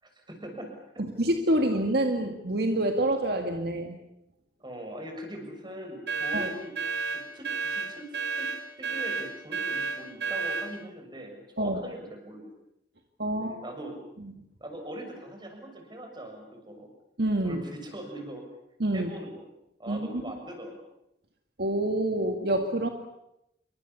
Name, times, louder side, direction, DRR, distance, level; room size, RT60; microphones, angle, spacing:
voice 1, 0.0-0.7 4.6-7.1 7.3-8.1 8.3-8.5 8.8-12.5 13.3-14.0 14.6-16.9 17.4-18.4 18.9-19.4 19.8-20.8, right 1 dB, 25° right, 4 dB, 6.7 m, -41 dB
voice 2, 1.2-4.0 6.3-6.5 11.6-11.8 13.2-13.6 17.2-17.6 18.8-19.1 19.9-20.2 21.6-22.9, right 1 dB, 65° right, 4 dB, 2.1 m, -27 dB
sound 1, 6.1-10.7, right 4 dB, 80° right, 4.7 m, -31 dB
28.0 x 24.0 x 7.1 m, 0.83 s
head